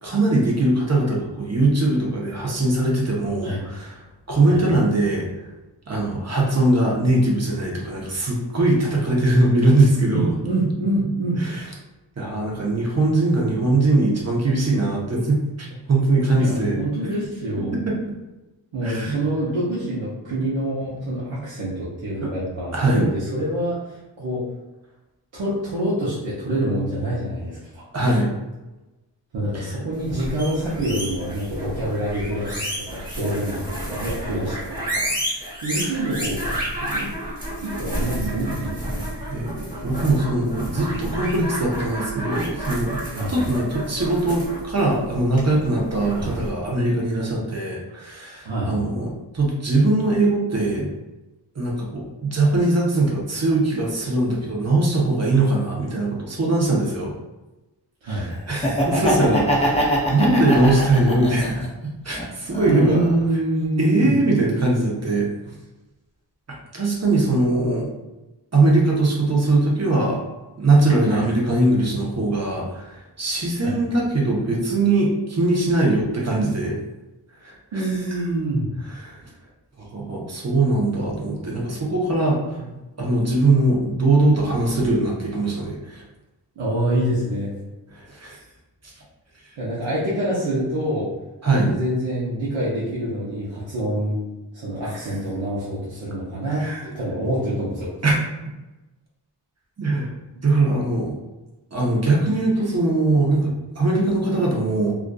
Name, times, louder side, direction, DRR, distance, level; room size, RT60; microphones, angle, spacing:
voice 1, 0.0-3.9 4.3-5.3 5.9-10.3 11.4-11.6 12.2-16.8 17.7-18.0 18.8-19.2 22.7-23.0 27.9-28.3 29.5-29.7 35.7-36.0 39.3-43.0 43.3-50.9 51.5-57.1 58.0-61.7 62.0-63.0 63.8-65.3 66.7-67.9 68.5-70.2 70.6-76.8 77.4-77.9 79.0-79.2 79.8-82.6 83.0-86.0 88.0-88.4 88.8-88.9 91.4-91.7 96.6-96.8 98.0-98.1 99.8-100.1 100.4-101.2 101.7-104.9, right 2 dB, 35° right, -2 dB, 0.7 m, -21 dB
voice 2, 10.1-11.4 16.3-17.8 18.7-24.4 25.3-28.2 29.3-35.0 35.6-37.1 37.6-39.0 43.2-43.3 46.1-46.3 48.4-48.8 58.0-58.3 62.6-64.2 71.1-71.2 73.6-73.8 77.7-78.7 82.6-82.7 86.6-87.5 89.6-91.1 91.5-94.2 94.5-97.9, right 1 dB, 85° right, -8 dB, 0.7 m, -26 dB
sound 1, 30.0-46.5, right 1 dB, 20° right, 1.3 m, -31 dB
Laughter, 58.5-61.7 62.1-63.2, equal, 15° left, 0.5 m, -23 dB
2.4 x 2.4 x 2.2 m, 1.0 s
wide cardioid pair, 55°, 44 cm